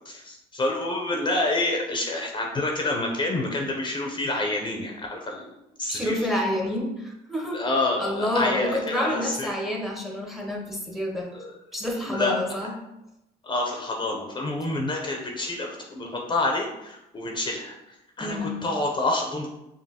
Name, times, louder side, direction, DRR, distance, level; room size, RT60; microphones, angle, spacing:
voice 1, 0.0-5.5 5.8-6.1 7.5-9.5 11.3-11.5 12.1-12.3 13.4-17.7 18.2-19.5, left 2 dB, 25° left, 1 dB, 0.6 m, -28 dB
voice 2, 5.9-7.6 8.0-11.3 11.7-12.7 18.2-18.6, left 1 dB, ahead, 0 dB, 0.7 m, -28 dB
5.2 x 2.6 x 2.8 m, 0.91 s
cardioid pair, 110°, 17 cm